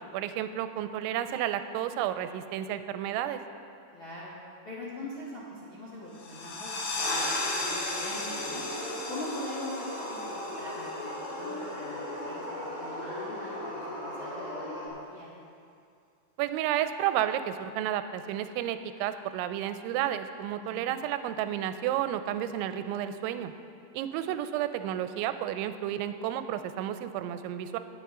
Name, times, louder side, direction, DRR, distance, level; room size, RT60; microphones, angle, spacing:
voice 1, 0.0-3.4 16.4-23.5 23.9-27.8, right 11 dB, 90° right, 10 dB, 2.9 m, -31 dB
voice 2, 3.9-4.3 4.6-8.6 9.1-15.3 20.6-20.9 24.2-24.3, left 1 dB, 60° left, -8 dB, 1.3 m, -43 dB
sound 1, 6.1-11.5, left 2 dB, 80° left, 4.0 m, -35 dB
sound 2, 7.0-14.9, left 1 dB, 30° left, 3.9 m, -37 dB
19.5 x 8.2 x 3.7 m, 2.4 s
omnidirectional pair, 5.3 m